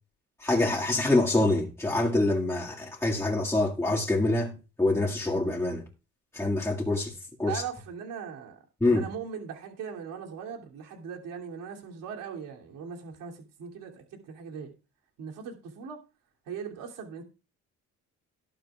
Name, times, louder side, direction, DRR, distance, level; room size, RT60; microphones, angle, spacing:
voice 1, 0.4-5.9 6.3-7.6 8.8-9.1, left 2 dB, 10° left, 2.0 m, -26 dB
voice 2, 7.5-8.6 8.9-14.7 15.2-16.0 16.5-17.2, right 7 dB, 90° right, 2.9 m, -39 dB
18.5 x 8.9 x 2.4 m
cardioid pair, 105°, 32 cm